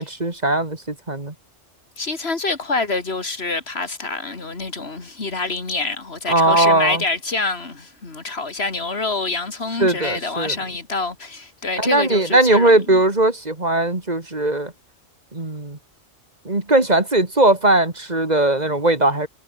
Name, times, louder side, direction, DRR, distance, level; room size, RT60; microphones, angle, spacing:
voice 1, 0.0-1.3 6.3-7.0 9.8-10.5 11.8-14.7 15.3-15.8 16.4-19.3, right 2 dB, 35° right, 2.7 m, -19 dB
voice 2, 2.0-13.0, left 3 dB, 60° left, 2.6 m, -26 dB
omnidirectional pair, 1.2 m